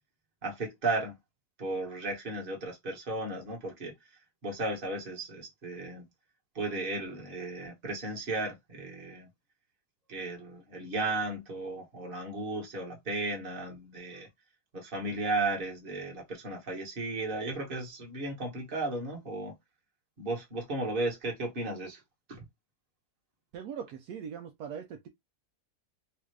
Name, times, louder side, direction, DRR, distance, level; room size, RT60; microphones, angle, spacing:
voice 1, 0.4-1.1 1.6-3.9 4.4-6.0 6.5-9.3 10.1-14.3 14.7-19.5 20.2-22.0 22.3-22.5, right 2 dB, 35° right, 1.3 m, -35 dB
voice 2, 23.5-25.1, right 7 dB, 75° right, 1.0 m, -40 dB
3.2 x 2.4 x 3.2 m
omnidirectional pair, 1.7 m